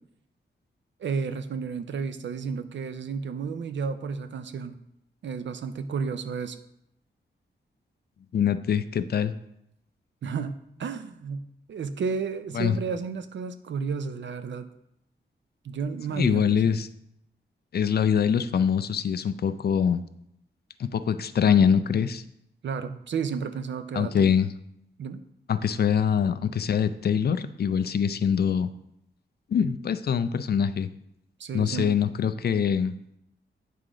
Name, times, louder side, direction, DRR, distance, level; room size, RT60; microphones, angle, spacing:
voice 1, 1.0-4.8 5.2-6.6 10.2-14.6 15.6-16.8 22.6-24.3 25.0-25.2 31.4-31.9, right 5 dB, 70° right, 10 dB, 0.6 m, -32 dB
voice 2, 8.3-9.3 12.5-12.8 16.1-16.9 17.7-20.0 20.8-22.2 23.9-24.5 25.5-28.7 29.5-30.9 31.5-32.9, left 7 dB, 55° left, 12 dB, 0.4 m, -24 dB
9.3 x 3.8 x 4.9 m, 0.78 s
wide cardioid pair, 145°, 20 cm